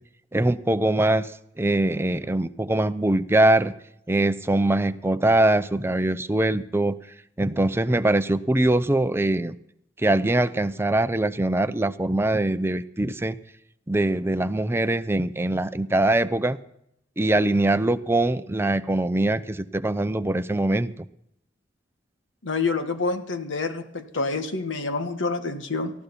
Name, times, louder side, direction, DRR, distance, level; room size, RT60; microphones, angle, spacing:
voice 1, 0.3-1.3 1.6-3.7 4.1-7.0 7.4-9.6 10.0-13.4 13.9-16.6 17.2-20.9, right 1 dB, 15° right, 11 dB, 0.6 m, -22 dB
voice 2, 22.4-25.9, left 3 dB, 90° left, 8 dB, 1.6 m, -27 dB
18.5 x 14.0 x 4.2 m, 0.76 s
head